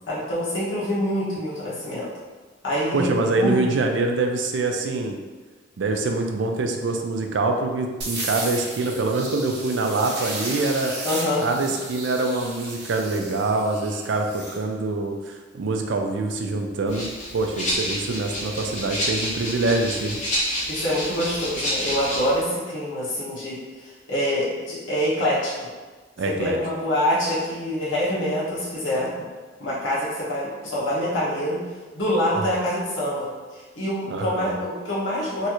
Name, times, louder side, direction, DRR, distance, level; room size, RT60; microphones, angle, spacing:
voice 1, 0.1-2.1 2.6-3.6 11.0-11.5 20.7-25.7 26.2-29.1 29.6-31.6 31.9-35.5, equal, 85° left, -7 dB, 1.1 m, -25 dB
voice 2, 2.9-5.2 5.8-10.9 11.4-20.2 26.2-26.6 34.1-34.5, right 3 dB, 75° right, 4 dB, 0.4 m, -25 dB
sound 1, 8.0-14.6, right 2 dB, 60° right, 0.8 m, -34 dB
Rattle (instrument), 16.9-22.4, equal, 40° left, 1.0 m, -29 dB
3.1 x 2.5 x 2.9 m, 1.3 s
head